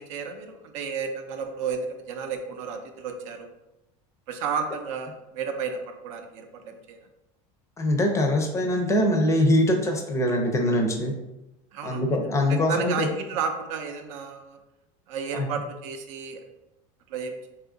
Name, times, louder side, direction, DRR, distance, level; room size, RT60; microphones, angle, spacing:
voice 1, 0.0-3.5 4.3-7.0 11.7-12.0 12.5-14.6 15.1-16.4 17.1-17.5, right 6 dB, 80° right, 6 dB, 0.5 m, -32 dB
voice 2, 7.8-11.1 11.8-13.1 15.3-15.6, left 1 dB, 15° left, 2 dB, 0.4 m, -23 dB
2.7 x 2.4 x 3.7 m, 0.95 s
supercardioid pair, 140°, 17 cm